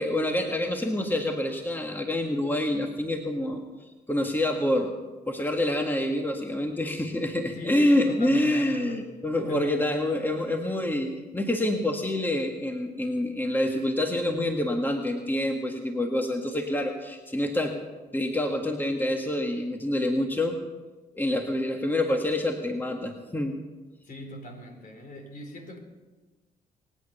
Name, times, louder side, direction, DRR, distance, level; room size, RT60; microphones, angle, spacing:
voice 1, 0.0-3.6 4.1-5.0 5.3-17.8 18.1-20.5 21.2-23.6, left 1 dB, 10° left, 3 dB, 1.9 m, -27 dB
voice 2, 7.5-9.0 9.4-9.9 24.0-25.8, left 1 dB, 55° left, 3 dB, 4.5 m, -41 dB
23.0 x 9.1 x 5.7 m, 1.2 s
supercardioid pair, 60°, 17 cm